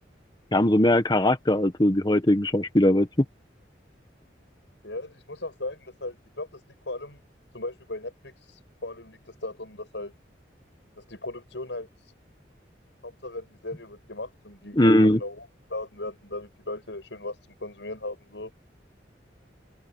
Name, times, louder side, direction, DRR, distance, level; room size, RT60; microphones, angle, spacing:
voice 1, 0.5-3.1 14.7-15.2, left 1 dB, 25° left, 1.4 m, -20 dB
voice 2, 4.8-7.2 7.5-10.1 11.0-11.9 13.0-18.5, left 2 dB, 80° left, 7.4 m, -37 dB
open air
head